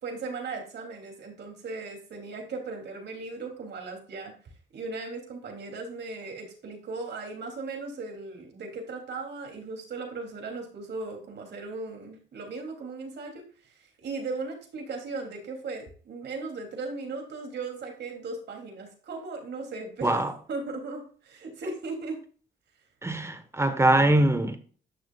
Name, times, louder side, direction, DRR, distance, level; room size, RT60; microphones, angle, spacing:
voice 1, 0.0-4.3 4.7-13.4 13.7-22.2, right 3 dB, 60° right, 2.9 m, -37 dB
voice 2, 20.0-20.3 23.0-24.6, right 1 dB, 15° right, 1.2 m, -22 dB
10.0 x 6.5 x 2.4 m
cardioid pair, 90°, 20 cm